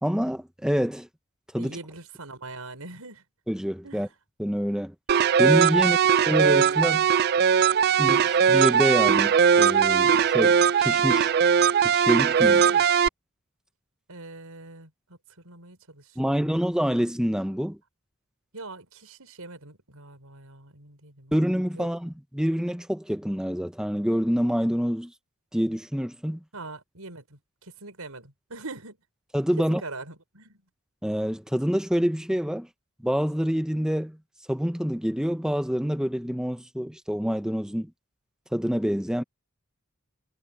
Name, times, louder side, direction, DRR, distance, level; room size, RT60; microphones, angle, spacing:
voice 1, 0.0-1.1 1.5-1.8 3.5-4.1 4.4-4.9 5.4-6.0 6.3-7.1 8.0-11.3 11.9-12.6 16.2-17.8 21.3-25.1 25.5-26.4 29.3-29.8 31.0-32.7 33.0-34.2 34.5-37.9 38.5-39.2, equal, 5° right, 1.0 m, -26 dB
voice 2, 1.5-3.2 3.8-4.1 5.8-6.0 12.4-13.0 14.1-15.2 15.4-16.6 18.5-21.4 21.7-21.9 26.5-29.0 29.7-30.6, right 3 dB, 85° right, 5.6 m, -43 dB
sound 1, 5.1-13.1, right 7 dB, 45° right, 0.3 m, -20 dB
head